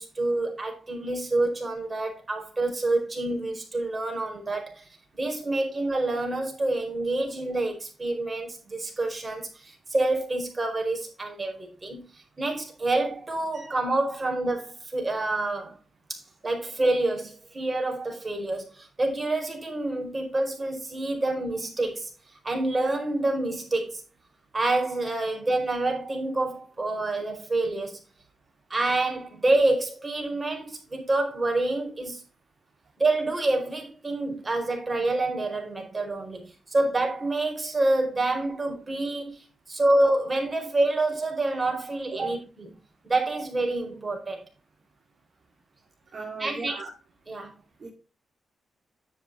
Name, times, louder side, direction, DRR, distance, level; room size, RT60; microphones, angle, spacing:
voice 1, 0.0-4.9 5.2-15.8 16.1-24.0 24.5-28.0 28.7-32.2 33.0-42.4 43.0-44.4 46.4-46.7 47.3-47.5, right 2 dB, 30° right, 4.6 m, -27 dB
voice 2, 46.1-46.9 47.8-47.9, right 3 dB, 55° right, 2.9 m, -36 dB
10.0 x 7.4 x 3.5 m
cardioid pair, 60°, 0 cm